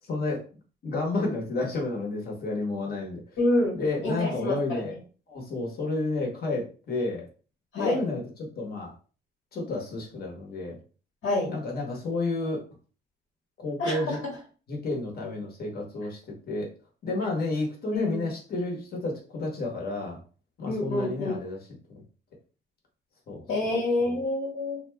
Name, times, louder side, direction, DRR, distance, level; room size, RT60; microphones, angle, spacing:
voice 1, 0.0-0.4 0.8-3.2 3.8-4.9 5.3-7.3 7.7-8.2 8.6-8.9 9.5-10.8 11.5-12.6 13.6-14.2 14.7-16.2 16.5-16.7 17.0-20.2 20.6-21.6 21.9-22.0 23.3-23.4 24.0-24.1, left 2 dB, 50° left, -1 dB, 1.1 m, -30 dB
voice 2, 3.4-5.0 7.7-8.0 11.2-11.5 13.8-14.3 17.9-18.3 20.7-21.4 23.5-24.8, left 2 dB, 80° left, -3 dB, 1.4 m, -28 dB
2.6 x 2.2 x 3.3 m, 0.37 s
cardioid pair, 90°, 20 cm